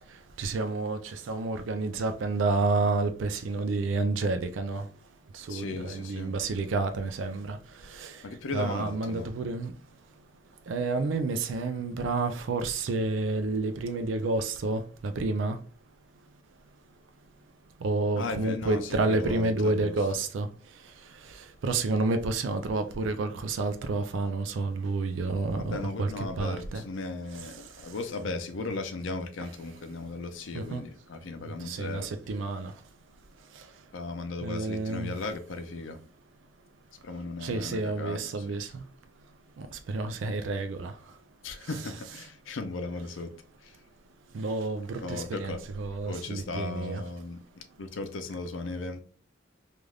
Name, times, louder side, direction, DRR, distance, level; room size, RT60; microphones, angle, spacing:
voice 1, 0.4-4.8 5.5-7.6 8.0-8.1 8.5-9.7 10.7-15.6 17.8-20.5 21.6-26.1 26.4-26.8 30.5-30.8 31.7-32.7 34.4-35.1 37.4-38.7 39.6-40.9 44.3-47.0, right 3 dB, 75° right, 0.4 m, -29 dB
voice 2, 5.5-6.3 8.2-9.3 18.1-20.0 25.6-32.1 33.9-36.0 37.0-38.6 41.4-43.3 43.6-43.7 45.0-45.6 46.1-49.0, left 3 dB, 75° left, 0.5 m, -36 dB
3.2 x 2.5 x 2.3 m
head